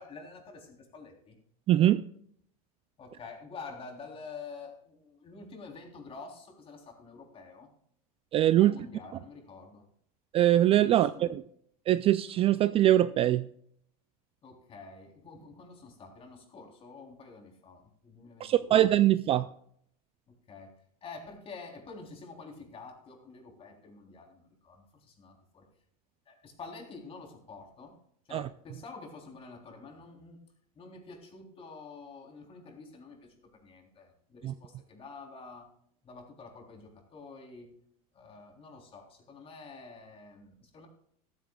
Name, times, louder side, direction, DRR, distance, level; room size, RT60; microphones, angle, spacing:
voice 1, 0.0-1.4 3.0-7.7 8.6-9.8 10.9-11.3 14.4-18.8 20.3-20.7 21.0-25.7 26.3-28.0 28.3-30.4 30.8-35.7 36.0-37.7 38.1-40.9, left 4 dB, 30° left, 2 dB, 3.4 m, -48 dB
voice 2, 1.7-2.0 8.3-8.7 10.3-11.4 11.9-13.5 18.4-19.5 28.3-28.5 34.4-34.5, right 13 dB, 30° right, 14 dB, 0.4 m, -23 dB
14.0 x 14.0 x 2.3 m, 0.66 s
supercardioid pair, 125°, 20 cm